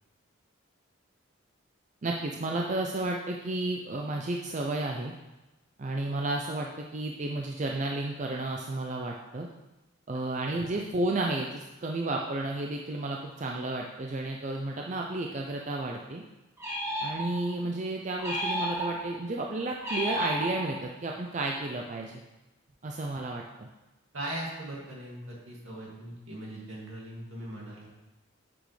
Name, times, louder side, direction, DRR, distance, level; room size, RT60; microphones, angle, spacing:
voice 1, 2.0-5.1 5.8-9.5 10.1-16.2 17.0-22.1 22.8-23.7, right 2 dB, 35° right, 1 dB, 0.4 m, -32 dB
sound 1, 16.6-17.6 18.2-19.2 19.8-21.0, equal, 15° right, 1.0 m, -32 dB
voice 2, 24.1-27.9, right 1 dB, 75° right, -4 dB, 2.2 m, -40 dB
8.1 x 6.2 x 3.2 m, 1.0 s
head